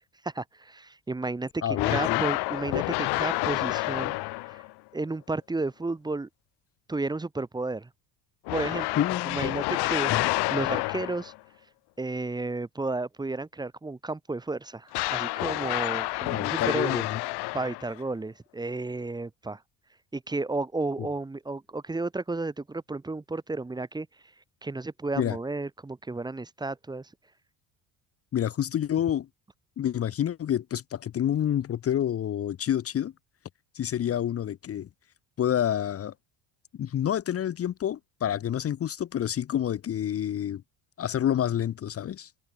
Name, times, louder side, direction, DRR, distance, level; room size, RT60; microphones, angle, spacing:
voice 1, 0.2-4.2 4.4-4.6 4.9-6.3 6.9-7.9 8.5-10.1 10.5-11.3 12.0-17.0 17.5-19.6 20.1-24.1 24.6-27.1, right 3 dB, 10° right, 2.2 m, -32 dB
voice 2, 1.6-2.2 9.0-9.4 10.1-10.3 16.3-17.2 25.2-25.4 28.3-29.3 29.8-33.1 33.7-34.9 35.4-36.1 36.8-40.6 41.0-42.3, left 10 dB, 35° left, 1.6 m, -28 dB
sound 1, 1.7-4.7 8.5-11.4 14.9-18.0, left 23 dB, 70° left, 0.9 m, -29 dB
open air
cardioid pair, 170°, 42 cm